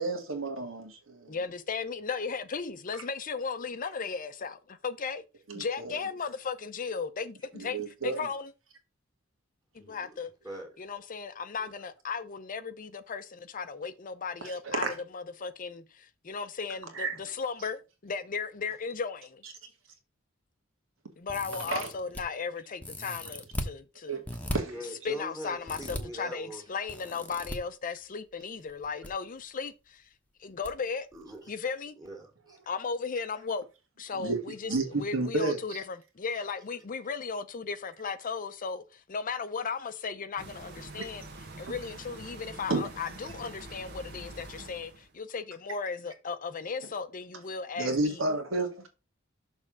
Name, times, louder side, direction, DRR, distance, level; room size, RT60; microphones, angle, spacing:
voice 1, 0.0-1.4 5.5-6.0 7.6-8.2 14.4-14.9 16.9-17.1 21.7-21.9 24.1-24.2 24.5-24.7 34.2-34.4 34.7-35.6 42.7-42.9 47.8-48.7, right 3 dB, 75° right, 1.9 m, -31 dB
voice 2, 1.3-5.2 5.5-8.5 9.7-10.3 10.8-19.4 21.2-24.2 25.0-30.0 30.4-31.1 31.5-32.0 32.7-33.7 34.0-41.3 41.6-48.2, left 5 dB, 40° left, 0.6 m, -36 dB
voice 3, 9.8-10.2 10.4-10.8 24.6-26.6 31.1-31.5 32.0-32.6, right 1 dB, 15° right, 2.0 m, -42 dB
sound 1, 21.3-22.2 22.8-23.7 24.3-24.6 25.7-26.0 26.9-27.6 28.7-29.1 29.4-29.5 30.6-30.7 31.1-31.2, left 1 dB, 5° left, 1.0 m, -37 dB
sound 2, 40.4-45.1, right 2 dB, 55° right, 1.4 m, -46 dB
6.6 x 3.6 x 6.1 m
head